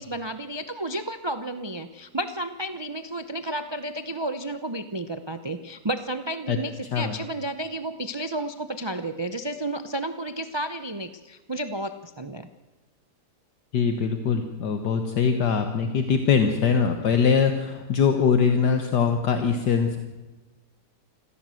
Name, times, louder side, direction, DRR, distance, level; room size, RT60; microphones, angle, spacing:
voice 1, 0.0-12.5, right 1 dB, 35° right, 9 dB, 0.4 m, -32 dB
voice 2, 13.7-20.0, left 6 dB, 70° left, 6 dB, 1.8 m, -22 dB
25.0 x 16.0 x 7.7 m, 1.2 s
omnidirectional pair, 1.9 m